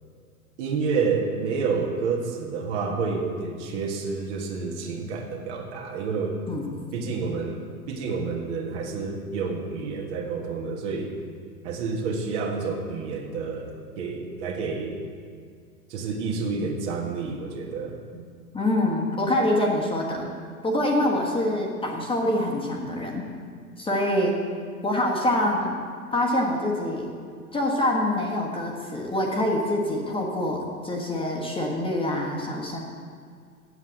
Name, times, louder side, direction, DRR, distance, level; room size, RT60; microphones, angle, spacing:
voice 1, 0.6-6.4 6.9-11.1 11.6-15.0 15.9-18.0, right 4 dB, 50° right, 1 dB, 1.7 m, -29 dB
voice 2, 18.5-20.3 20.6-23.2 23.8-24.4 24.8-25.8 26.1-27.1 27.5-32.8, left 1 dB, 10° left, -1 dB, 1.4 m, -25 dB
8.1 x 7.4 x 7.8 m, 2.1 s
hypercardioid pair, 100°, 45 cm